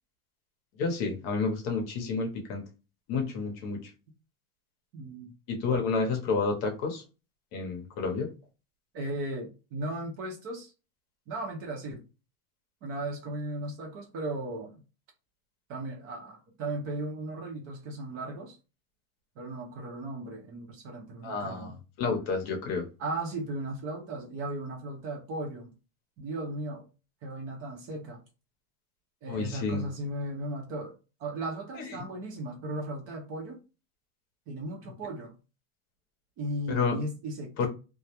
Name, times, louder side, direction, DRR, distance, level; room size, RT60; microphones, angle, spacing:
voice 1, 0.8-2.6 3.1-3.8 5.5-7.0 7.5-8.3 21.2-22.9 29.3-29.8 31.9-32.0 36.7-37.0 37.6-37.7, left 4 dB, 45° left, 0.7 m, -30 dB
voice 2, 4.9-5.3 8.9-10.7 11.3-12.0 12.8-14.8 15.7-18.6 19.4-21.8 23.0-25.7 26.2-26.9 27.2-28.2 29.2-33.6 34.5-35.3 36.4-37.7, right 1 dB, 35° right, 0.6 m, -36 dB
2.3 x 2.0 x 2.8 m
supercardioid pair, 165°, 40 cm